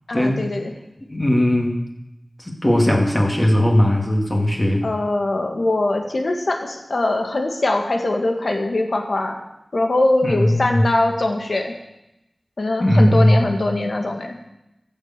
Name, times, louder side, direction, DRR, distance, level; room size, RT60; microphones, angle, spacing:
voice 1, 0.1-0.7 4.8-9.4 9.7-11.7 12.6-14.3, left 2 dB, 75° left, 3 dB, 1.8 m, -22 dB
voice 2, 1.1-1.8 2.4-4.9 10.2-10.9 12.8-13.5, left 1 dB, 25° left, -1 dB, 2.5 m, -18 dB
15.5 x 6.8 x 7.4 m, 0.91 s
wide cardioid pair, 60°, 0 cm